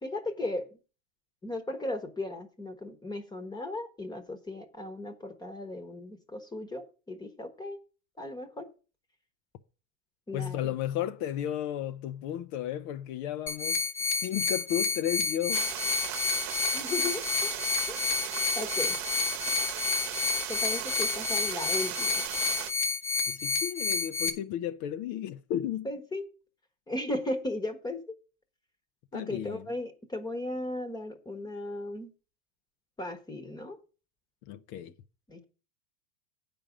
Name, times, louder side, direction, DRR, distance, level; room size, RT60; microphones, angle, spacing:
voice 1, 0.0-0.8 1.4-7.8 8.2-8.7 10.3-10.7 16.7-17.5 17.9-18.2 18.5-19.0 20.5-22.1 25.8-26.2 26.9-28.0 29.1-32.1 33.0-33.8 35.3-35.4, left 1 dB, 10° left, 1.2 m, -36 dB
voice 2, 10.3-13.8 14.2-15.7 23.3-25.9 29.1-29.6 34.5-34.9, left 11 dB, 50° left, 0.7 m, -33 dB
sound 1, 13.5-24.3, left 4 dB, 30° left, 1.2 m, -30 dB
sound 2, 15.5-22.7, right 11 dB, 40° right, 1.1 m, -36 dB
8.8 x 5.2 x 7.2 m
supercardioid pair, 150°, 36 cm